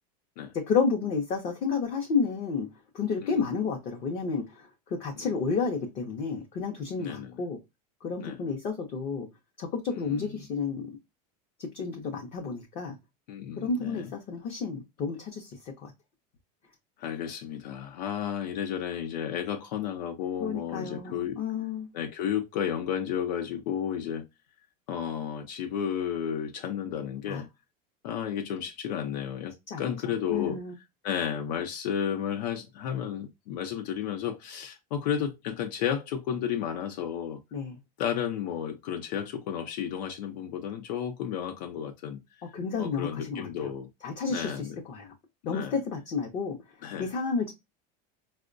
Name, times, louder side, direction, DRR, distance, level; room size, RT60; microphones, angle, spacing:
voice 1, 0.5-2.7 2.9-7.6 8.0-9.3 9.6-10.9 11.6-13.0 13.6-15.5 15.8-15.9 20.4-21.9 27.3-27.4 29.7-30.7 37.5-37.7 42.5-43.5 44.0-45.1 45.5-46.6 47.0-47.5, left 5 dB, 30° left, 0.5 m, -31 dB
voice 2, 7.0-7.4 8.2-8.4 9.9-10.4 13.3-14.1 17.0-21.4 21.9-24.3 24.9-27.5 28.0-30.6 31.0-37.4 38.0-42.2 42.8-43.9 44.3-44.8 45.4-45.8 46.8-47.1, left 9 dB, 90° left, 0.6 m, -32 dB
4.3 x 2.1 x 2.4 m
supercardioid pair, 170°, 21 cm